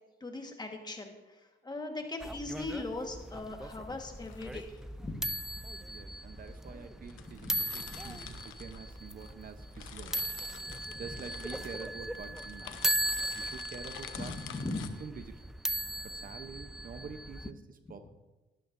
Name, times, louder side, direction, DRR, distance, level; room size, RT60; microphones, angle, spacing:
voice 1, 0.2-5.2 7.4-7.6 7.9-8.3 10.6-10.7 13.1-13.3 14.2-14.9, left 2 dB, 20° left, 4 dB, 1.4 m, -40 dB
sound 1, 2.0-2.3 4.1-4.8 5.6-5.7 6.5-6.6 6.8-6.9 7.1-9.3 9.6-14.9, left 10 dB, 80° left, 0.8 m, -49 dB
sound 2, 2.2-17.5, right 1 dB, ahead, 0.3 m, -38 dB
voice 2, 5.8-10.3 11.0-12.8 13.3-15.5 16.0-18.1, right 6 dB, 45° right, 9 dB, 0.7 m, -47 dB
12.0 x 12.0 x 2.6 m, 1.2 s
cardioid pair, 90°, 20 cm